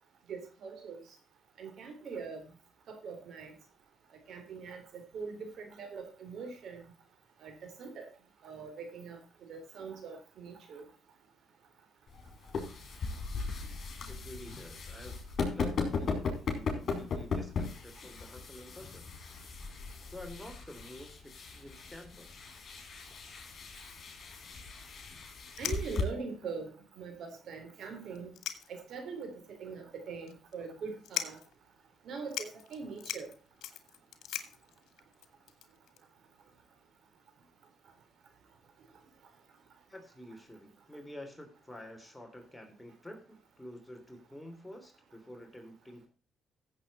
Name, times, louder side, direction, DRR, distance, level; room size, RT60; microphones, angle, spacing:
voice 1, 0.3-1.0 1.6-2.4 2.9-3.5 4.3-4.8 5.1-6.8 7.4-7.5 7.8-8.1 8.4-9.2 9.5-10.8 25.6-26.7 27.0-28.3 28.7-29.3 29.6-31.4 32.0-33.3, right 5 dB, 65° right, 6 dB, 3.7 m, -42 dB
sound 1, 12.1-26.0, left 4 dB, 50° left, 5.0 m, -38 dB
voice 2, 14.1-19.1 20.1-22.3 39.9-46.1, left 1 dB, 5° left, 4 dB, 3.2 m, -49 dB
sound 2, 25.1-25.2 25.5-26.2 26.9-27.0 27.2-27.3 28.1-29.0 29.4-29.5 30.3-30.5 31.0-31.5 32.0-32.1 32.3-36.0, left 11 dB, 80° left, 1.6 m, -40 dB
15.0 x 7.7 x 4.2 m, 0.36 s
cardioid pair, 90°, 0 cm